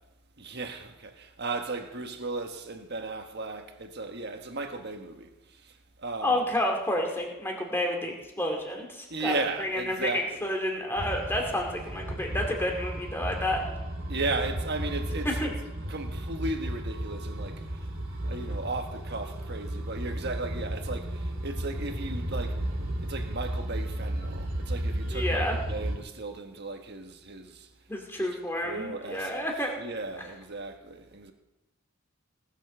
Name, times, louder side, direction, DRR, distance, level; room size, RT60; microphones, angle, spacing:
voice 1, 0.4-5.3 5.6-5.7 6.0-6.4 9.1-10.5 14.1-15.5 15.9-17.6 18.2-22.6 23.0-27.7 28.2-28.3 28.6-29.4 29.8-31.3, right 3 dB, 50° right, 1.4 m, -35 dB
voice 2, 6.2-13.8 15.2-15.5 25.1-25.6 27.9-29.7, left 1 dB, 10° left, 2.3 m, -30 dB
sound 1, 11.0-26.0, right 1 dB, 70° right, 2.7 m, -34 dB
19.0 x 7.5 x 6.7 m
head